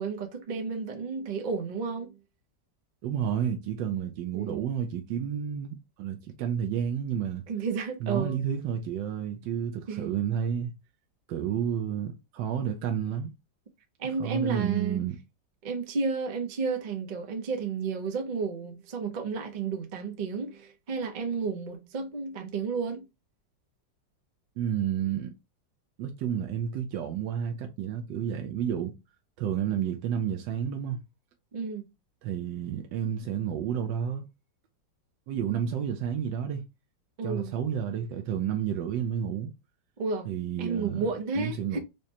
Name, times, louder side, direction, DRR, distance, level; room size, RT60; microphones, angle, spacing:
voice 1, 0.0-2.2 4.3-4.7 7.5-8.4 9.9-10.1 14.0-15.0 15.6-23.1 31.5-31.9 37.2-37.5 40.0-40.3 40.6-41.8, right 5 dB, 60° right, 0.5 m, -32 dB
voice 2, 3.0-7.4 8.0-10.7 11.3-13.3 14.2-15.2 24.6-25.3 26.0-28.9 29.4-31.0 32.2-34.2 35.3-36.6 37.2-39.5 40.3-41.1 41.3-41.8, right 8 dB, 85° right, 1.3 m, -30 dB
5.0 x 2.1 x 2.7 m
omnidirectional pair, 1.9 m